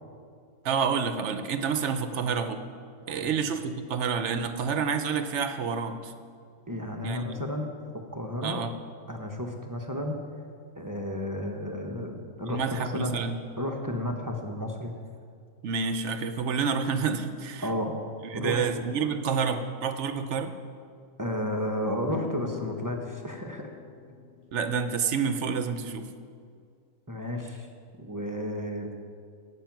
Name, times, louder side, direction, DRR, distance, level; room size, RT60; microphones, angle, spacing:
voice 1, 0.6-2.6 3.1-6.1 7.0-7.2 8.4-8.7 12.5-13.4 15.6-17.7 18.3-20.5 24.5-26.1, right 6 dB, 60° right, 9 dB, 0.9 m, -28 dB
voice 2, 6.7-8.6 9.1-10.2 10.8-13.1 13.6-14.9 17.6-17.9 18.3-18.6 21.2-23.7 27.1-27.7 28.0-28.9, left 1 dB, 15° right, 2 dB, 0.7 m, -32 dB
sound 1, 22.1-25.7, left 6 dB, 65° left, 0.9 m, -40 dB
16.5 x 6.2 x 5.9 m, 2.2 s
omnidirectional pair, 1.5 m